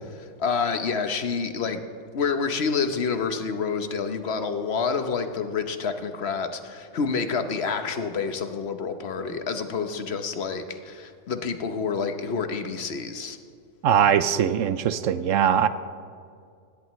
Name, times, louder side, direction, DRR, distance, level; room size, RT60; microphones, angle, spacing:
voice 1, 0.1-1.8 2.1-13.4, left 5 dB, 55° left, 8 dB, 1.1 m, -28 dB
voice 2, 13.8-15.7, right 8 dB, 75° right, 12 dB, 1.0 m, -21 dB
18.5 x 17.0 x 3.1 m, 2.3 s
omnidirectional pair, 1.4 m